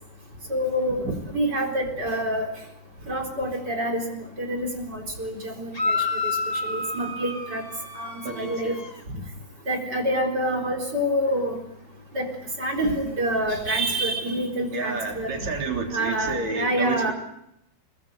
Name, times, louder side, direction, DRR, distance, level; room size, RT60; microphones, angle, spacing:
voice 1, 0.5-2.5 3.1-6.0 6.2-6.3 6.6-7.6 7.9-8.7 9.7-11.6 12.1-12.3 12.6-15.3 15.9-17.1, right 1 dB, 25° right, 2 dB, 4.1 m, -27 dB
sound 1, 5.7-9.0, left 3 dB, 30° left, 0.6 m, -29 dB
voice 2, 8.2-8.8 14.7-17.1, right 3 dB, 40° right, 1 dB, 4.5 m, -30 dB
23.5 x 20.5 x 8.0 m, 0.80 s
omnidirectional pair, 5.1 m